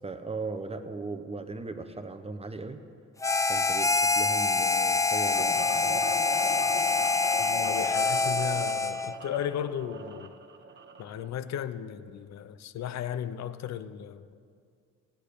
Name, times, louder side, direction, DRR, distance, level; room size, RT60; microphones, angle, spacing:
voice 1, 0.0-2.8 3.5-6.0, right 3 dB, 20° right, 0.9 m, -38 dB
Harmonica, 3.2-9.2, left 3 dB, 10° left, 0.4 m, -26 dB
sound 1, 5.3-11.3, right 4 dB, 35° right, 1.1 m, -41 dB
voice 2, 7.4-10.3 11.0-14.3, left 9 dB, 60° left, 0.7 m, -35 dB
15.5 x 10.0 x 6.7 m
cardioid pair, 90°, 30 cm